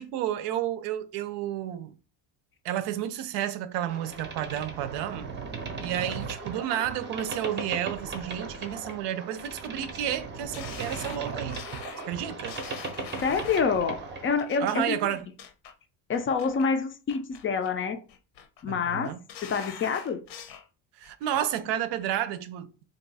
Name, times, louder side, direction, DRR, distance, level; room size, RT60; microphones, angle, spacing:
voice 1, 0.0-1.9 2.6-5.3 5.8-11.6 12.1-12.6 14.6-15.3 18.7-19.2 21.0-22.7, right 11 dB, 80° right, 0.6 m, -31 dB
Boat Water vehicle, 3.9-14.4, right 4 dB, 25° right, 0.6 m, -37 dB
sound 1, 10.5-13.8 14.4-14.7 15.2-15.7 16.1-16.7 17.1-17.8 18.1-18.6 19.0-20.7 21.0-21.6 22.0-22.1, left 8 dB, 70° left, 0.8 m, -44 dB
voice 2, 13.2-15.0 16.1-18.0 18.6-19.1 19.4-20.2, left 5 dB, 30° left, 0.4 m, -27 dB
2.6 x 2.3 x 4.0 m
cardioid pair, 125°, 41 cm